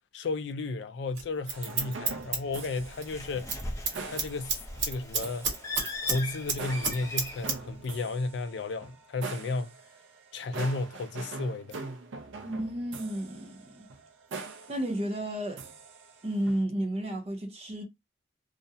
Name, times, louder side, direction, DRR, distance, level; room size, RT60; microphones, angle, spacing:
voice 1, 0.1-3.5 4.1-5.5 6.0-9.7 10.3-11.8, left 3 dB, 65° left, 0.4 m, -33 dB
Scissors, 1.1-3.1 3.4-3.6 3.9-6.2 6.5-7.6 7.8-7.9, right 4 dB, 65° right, 1.0 m, -30 dB
sound 1, 1.5-16.6, right 3 dB, 85° right, 0.5 m, -44 dB
Bird, 2.5-7.5, left 2 dB, 15° left, 0.5 m, -40 dB
voice 2, 12.4-13.9 14.7-15.6 16.2-17.8, right 1 dB, 35° right, 0.6 m, -32 dB
2.4 x 2.0 x 2.6 m
head